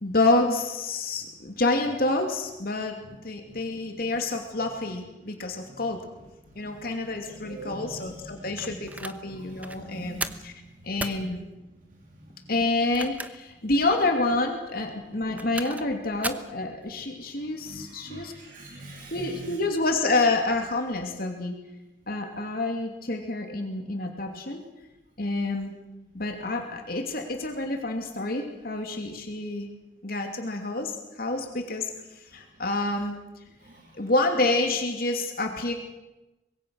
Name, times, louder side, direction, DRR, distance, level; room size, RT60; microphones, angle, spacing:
voice 1, 0.0-6.0 6.6-10.5 10.8-11.4 12.5-18.3 19.1-21.5 22.1-24.6 25.2-25.7 26.1-29.7 30.0-33.2 33.9-35.7, left 2 dB, 55° left, 3 dB, 2.7 m, -28 dB
voice 2, 7.2-8.4 8.8-9.0 9.3-10.4 11.1-11.2 12.1-12.2 17.6-19.6 33.6-33.9, right 2 dB, 45° right, -1 dB, 3.1 m, -44 dB
sound 1, 8.6-9.2 9.6-9.8 10.2-10.5 11.0-11.2 12.7-13.5 13.9-14.0 15.1-15.9 16.2-16.5, right 2 dB, 10° right, 0.9 m, -35 dB
24.5 x 21.5 x 6.4 m, 1.0 s
head